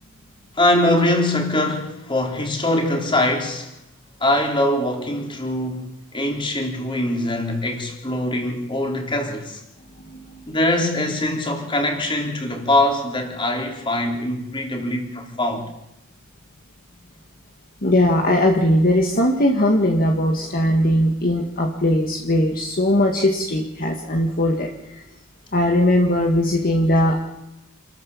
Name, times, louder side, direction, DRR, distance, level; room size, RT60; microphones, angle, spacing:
voice 1, 0.6-3.7 4.2-9.6 10.5-15.7, left 1 dB, 25° left, 3.8 m, -22 dB
voice 2, 17.8-25.0 25.5-27.3, left 1 dB, 45° left, 1.9 m, -19 dB
28.5 x 14.0 x 7.3 m
head